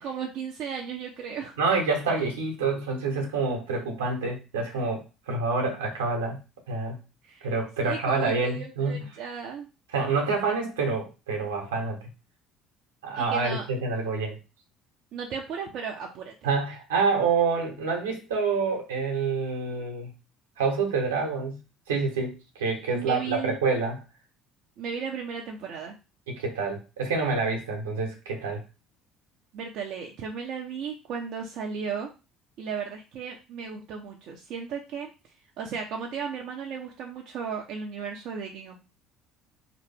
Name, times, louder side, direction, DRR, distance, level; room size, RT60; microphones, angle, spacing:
voice 1, 0.0-1.5 7.2-9.7 13.2-13.7 15.1-16.5 22.9-23.6 24.8-25.9 29.5-32.1 32.6-35.1 35.6-38.8, right 6 dB, 60° right, 0 dB, 0.7 m, -35 dB
voice 2, 1.6-6.4 6.7-7.0 7.4-9.0 9.9-12.0 13.0-14.4 16.4-20.1 20.6-21.6 21.9-24.0 26.3-28.6, right 4 dB, 85° right, 2 dB, 1.1 m, -27 dB
4.0 x 3.0 x 3.4 m, 0.29 s
hypercardioid pair, 65°, 0 cm